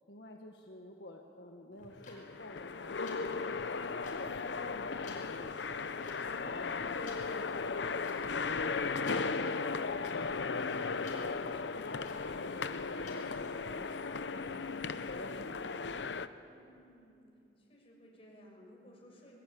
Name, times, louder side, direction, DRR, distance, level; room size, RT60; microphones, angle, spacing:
voice 1, 0.1-10.2 10.4-16.3, left 1 dB, 70° left, 2 dB, 1.4 m, -51 dB
sound 1, 1.7-13.5, left 4 dB, 50° left, 5.6 m, -57 dB
sound 2, 1.9-16.3, left 4 dB, 90° left, 0.7 m, -36 dB
voice 2, 16.4-17.3 17.6-19.4, equal, 35° left, -1 dB, 6.1 m, -58 dB
20.5 x 19.0 x 8.6 m, 2.7 s
head